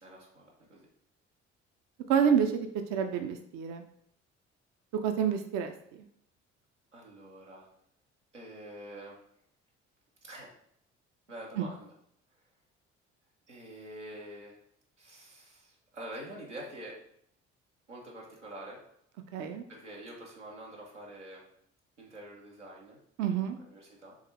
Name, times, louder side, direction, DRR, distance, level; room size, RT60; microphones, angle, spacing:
voice 1, 0.0-0.9 6.9-7.7 8.3-9.2 10.2-10.5 11.3-11.9 13.5-14.6 15.0-17.0 17.9-18.8 19.7-21.4 22.0-23.0 23.6-24.1, right 1 dB, 90° right, -4 dB, 0.9 m, -46 dB
voice 2, 2.1-3.8 5.0-5.7 11.6-11.7 19.3-19.6 23.2-23.6, right 8 dB, 50° right, 6 dB, 0.6 m, -28 dB
3.7 x 3.4 x 4.2 m, 0.70 s
figure-of-eight pair, 45°, 35 cm